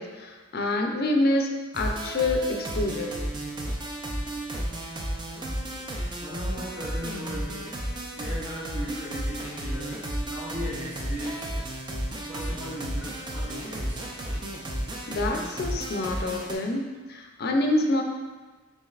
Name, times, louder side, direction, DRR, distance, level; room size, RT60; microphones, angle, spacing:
voice 1, 0.0-1.5 1.7-3.1 15.1-18.0, left 2 dB, 50° left, 3 dB, 0.4 m, -26 dB
sound 1, 1.7-16.5, right 1 dB, 20° right, 0.4 m, -33 dB
voice 2, 3.9-4.5 5.6-5.9 6.2-11.7 12.3-14.0, equal, 80° right, -12 dB, 1.2 m, -38 dB
6.2 x 2.7 x 2.4 m, 1.3 s
head